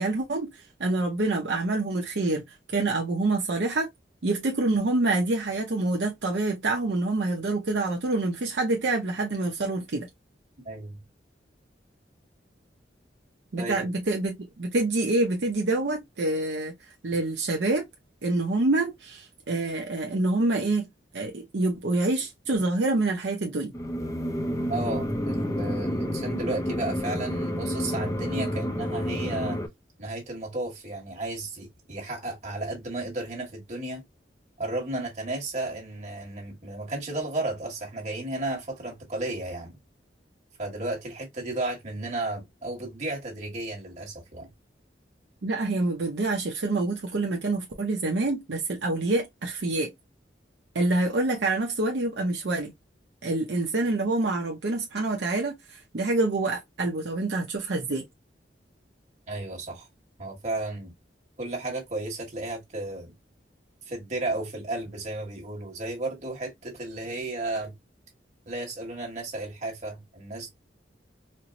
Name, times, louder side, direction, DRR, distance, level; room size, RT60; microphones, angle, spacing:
voice 1, 0.0-2.4 2.7-3.9 4.2-10.1 13.5-16.7 17.0-17.8 18.2-20.9 21.1-23.7 45.4-49.9 50.7-52.7 53.2-58.1, right 2 dB, 75° right, 0.7 m, -26 dB
voice 2, 10.6-11.0 13.6-13.8 24.7-29.6 30.0-34.0 34.6-39.8 40.6-44.5 59.3-59.9 60.2-60.9 61.4-63.1 63.9-67.7 68.5-70.5, right 2 dB, 40° right, 1.4 m, -33 dB
sound 1, 23.7-29.7, equal, 20° left, 0.4 m, -29 dB
4.4 x 2.0 x 2.5 m
head